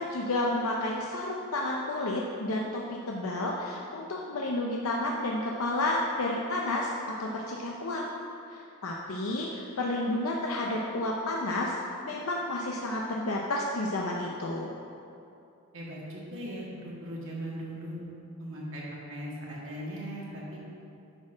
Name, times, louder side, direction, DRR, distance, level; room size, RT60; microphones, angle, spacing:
voice 1, 0.0-8.0 8.5-11.8 12.1-14.7, left 2 dB, 75° left, -2 dB, 0.7 m, -31 dB
voice 2, 15.7-18.0 18.4-18.8 19.1-20.6, equal, 65° right, -5 dB, 2.2 m, -38 dB
10.0 x 4.3 x 6.2 m, 2.7 s
head